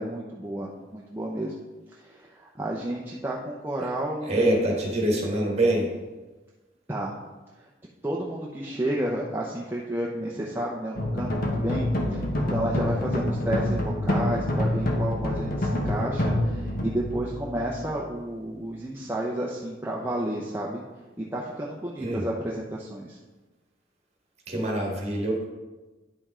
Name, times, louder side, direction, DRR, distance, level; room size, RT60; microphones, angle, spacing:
voice 1, 0.0-1.5 1.9-4.6 6.9-7.1 7.6-7.7 8.0-20.8 21.2-23.2, right 1 dB, 10° right, -4 dB, 0.6 m, -31 dB
voice 2, 4.3-5.9 22.0-22.2 24.5-25.4, right 1 dB, 35° right, 0 dB, 1.6 m, -25 dB
sound 1, 11.0-18.2, left 1 dB, 50° left, 1.1 m, -27 dB
10.0 x 5.2 x 3.6 m, 1.2 s
head